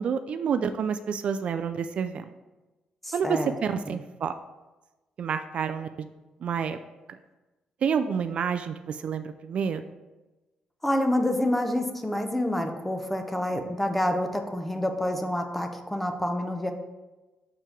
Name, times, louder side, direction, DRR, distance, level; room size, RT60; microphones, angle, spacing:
voice 1, 0.0-2.3 3.1-4.3 5.2-6.1 6.4-6.8 7.8-9.8, right 6 dB, 55° right, 10 dB, 0.3 m, -28 dB
voice 2, 3.0-3.5 3.9-4.0 10.8-16.7, left 1 dB, 5° left, 5 dB, 0.7 m, -28 dB
6.0 x 4.6 x 5.1 m, 1.1 s
cardioid pair, 115°, 2 cm